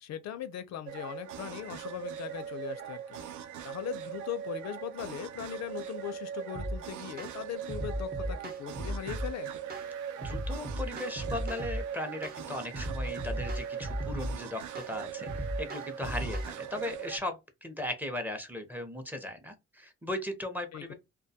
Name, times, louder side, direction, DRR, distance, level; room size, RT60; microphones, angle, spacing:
voice 1, 0.0-9.5 20.7-20.9, left 10 dB, 60° left, 0.4 m, -40 dB
sound 1, 0.9-17.2, right 9 dB, 80° right, 0.5 m, -40 dB
sound 2, 6.5-6.8 7.2-7.4 7.7-9.3 9.7-9.9 10.2-11.8 12.2-12.4 12.7-14.3 14.8-14.9 15.3-16.5, equal, 30° right, 0.9 m, -36 dB
voice 2, 10.2-20.9, left 1 dB, 5° right, 0.6 m, -38 dB
2.2 x 2.2 x 2.7 m
cardioid pair, 90°, 30 cm